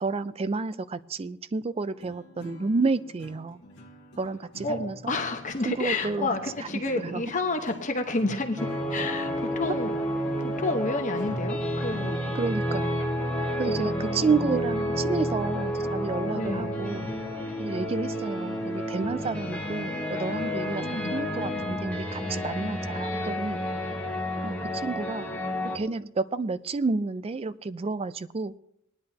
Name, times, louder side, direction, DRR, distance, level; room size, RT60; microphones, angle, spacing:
voice 1, 0.0-3.6 4.2-5.1 5.7-6.3 7.0-7.2 12.3-13.1 13.6-17.1 17.6-23.6 24.4-24.5 24.8-25.3 25.7-28.5, right 4 dB, 30° right, 15 dB, 0.3 m, -30 dB
sound 1, 1.9-11.9, left 1 dB, 55° left, 1.6 m, -48 dB
voice 2, 4.6-9.9 10.4-12.4 13.6-14.6 16.3-16.8 20.8-21.2, left 2 dB, 35° left, 5 dB, 1.1 m, -30 dB
sound 2, 8.6-25.8, equal, 5° left, 1.4 m, -30 dB
18.5 x 10.5 x 2.8 m, 0.75 s
head